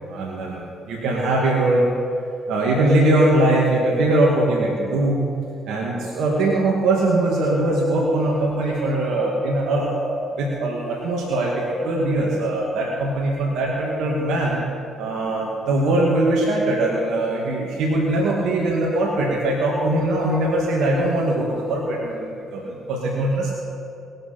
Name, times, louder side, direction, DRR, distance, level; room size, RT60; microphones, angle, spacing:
voice 1, 0.1-1.9 2.5-5.2 5.7-14.6 15.0-23.5, right 1 dB, 75° right, -3 dB, 2.2 m, -21 dB
20.5 x 7.9 x 6.0 m, 2.6 s
supercardioid pair, 65°, 0 cm